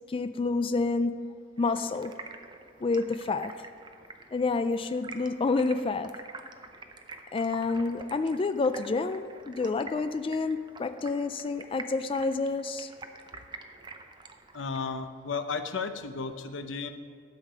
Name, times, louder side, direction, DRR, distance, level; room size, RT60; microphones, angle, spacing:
voice 1, 0.0-2.1 2.8-3.5 4.3-6.1 7.3-12.9, left 3 dB, 30° left, 10 dB, 0.3 m, -29 dB
Stream, 1.6-15.0, right 3 dB, 25° right, 0.6 m, -47 dB
voice 2, 14.5-16.9, left 4 dB, 80° left, 8 dB, 0.7 m, -34 dB
12.0 x 7.4 x 5.0 m, 2.2 s
head